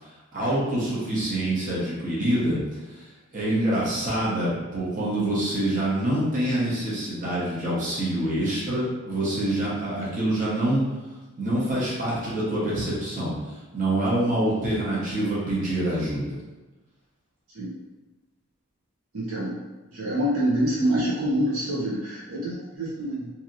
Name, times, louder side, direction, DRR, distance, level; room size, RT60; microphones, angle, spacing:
voice 1, 0.3-2.6 2.9-3.0 3.3-10.8 11.4-13.3 13.7-16.4, right 1 dB, 35° right, -7 dB, 0.9 m, -26 dB
voice 2, 19.1-19.6 19.9-23.3, right 1 dB, 85° right, -6 dB, 0.8 m, -26 dB
2.8 x 2.8 x 2.5 m, 1.2 s
head